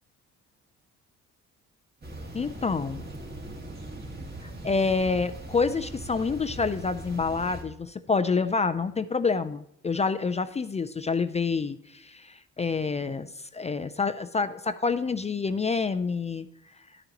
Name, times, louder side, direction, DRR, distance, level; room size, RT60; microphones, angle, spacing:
sound 1, 2.0-7.6, right 1 dB, 30° right, 2.0 m, -40 dB
voice 1, 2.3-3.0 4.4-16.5, left 4 dB, 20° left, 11 dB, 0.4 m, -28 dB
11.0 x 9.0 x 2.9 m, 0.80 s
cardioid pair, 90°, 30 cm